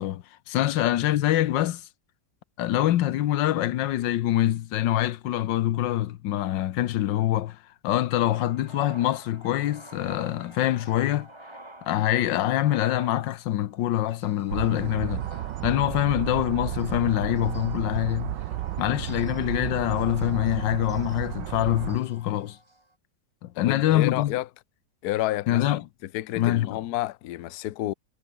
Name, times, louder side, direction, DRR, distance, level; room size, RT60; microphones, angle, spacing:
voice 1, 0.0-1.9 2.6-11.3 11.8-15.3 15.6-18.4 18.8-22.6 23.4-24.3 25.5-25.8 26.4-26.8, left 13 dB, 90° left, 1.5 m, -25 dB
Male speech man speaking, 8.3-13.8 14.2-22.9, right 1 dB, 15° right, 2.6 m, -49 dB
sound 1, 14.5-22.0, right 14 dB, 90° right, 1.4 m, -33 dB
voice 2, 23.6-24.5 25.0-25.8 26.1-27.9, left 15 dB, 65° left, 1.1 m, -30 dB
omnidirectional pair, 1.9 m